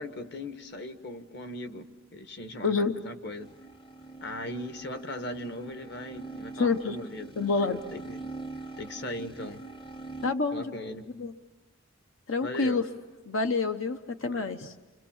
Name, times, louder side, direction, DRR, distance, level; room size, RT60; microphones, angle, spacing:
voice 1, 0.0-3.5 4.2-7.3 7.6-8.2 8.8-9.6 10.5-11.1 12.4-12.8 14.3-14.5, left 1 dB, 55° left, 8 dB, 1.5 m, -39 dB
voice 2, 2.6-2.9 6.6-7.0 7.4-7.8 10.2-10.7 11.1-11.3 12.3-12.8 13.3-14.7, left 4 dB, 85° left, 7 dB, 1.0 m, -27 dB
sound 1, 3.3-10.3, right 2 dB, 25° left, 0.8 m, -43 dB
29.5 x 26.5 x 7.3 m, 1.2 s
head